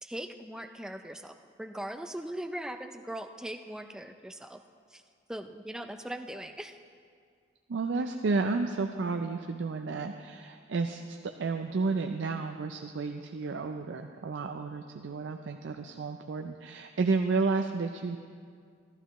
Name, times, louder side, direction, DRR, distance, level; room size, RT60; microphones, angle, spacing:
voice 1, 0.0-4.6 4.9-5.0 5.3-6.8, right 1 dB, 5° right, 7 dB, 0.4 m, -40 dB
voice 2, 7.7-18.2, right 4 dB, 80° right, 5 dB, 0.5 m, -31 dB
14.5 x 12.5 x 3.0 m, 2.2 s
head